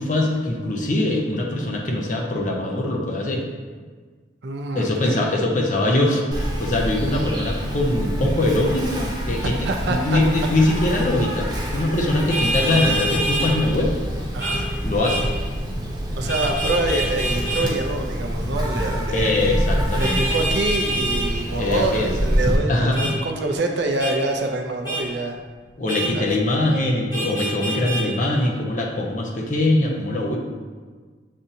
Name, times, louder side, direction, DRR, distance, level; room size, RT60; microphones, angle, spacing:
voice 1, 0.0-3.5 4.7-9.6 9.9-13.9 14.8-15.3 19.1-20.2 21.6-22.1 22.7-23.1 25.8-30.4, left 1 dB, 45° left, 0 dB, 0.6 m, -22 dB
voice 2, 4.4-5.2 9.6-10.2 14.3-14.7 16.1-19.4 19.9-25.4 26.1-26.4, right 2 dB, 70° right, 3 dB, 0.5 m, -26 dB
Insect, 6.3-22.6, equal, 20° right, 0.6 m, -26 dB
Vehicle horn car horn honking, 12.3-13.5 14.4-14.6 15.0-15.3 16.3-17.7 20.0-21.3 22.9-23.1 24.0-24.2 24.8-25.0 25.9-26.1 27.1-28.0, right 1 dB, 25° left, 0.9 m, -26 dB
7.2 x 2.6 x 2.7 m, 1.5 s
head